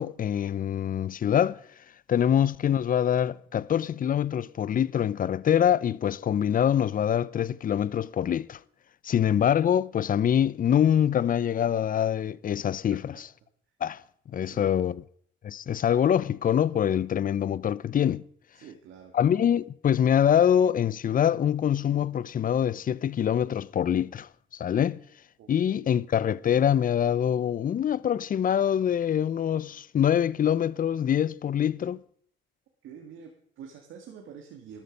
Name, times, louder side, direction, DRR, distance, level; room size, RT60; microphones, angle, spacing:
voice 1, 0.0-1.6 2.1-8.6 9.0-13.1 13.8-14.0 14.3-15.0 15.4-18.2 19.1-25.0 25.5-32.0, left 9 dB, 45° left, 0.6 m, -24 dB
voice 2, 14.4-14.8 18.5-19.1 25.4-26.0 32.8-34.8, right 7 dB, 85° right, 1.9 m, -47 dB
12.5 x 12.0 x 5.2 m
cardioid pair, 90°, 20 cm